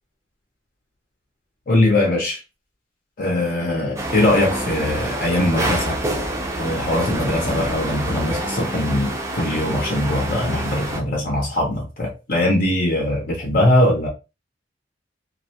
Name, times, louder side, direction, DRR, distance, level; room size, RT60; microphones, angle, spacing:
voice 1, 1.7-2.4 3.2-6.0 6.6-14.1, left 1 dB, 50° left, 0.6 m, -21 dB
sound 1, 4.0-11.0, right 1 dB, 15° right, 0.5 m, -27 dB
2.3 x 2.1 x 2.7 m
head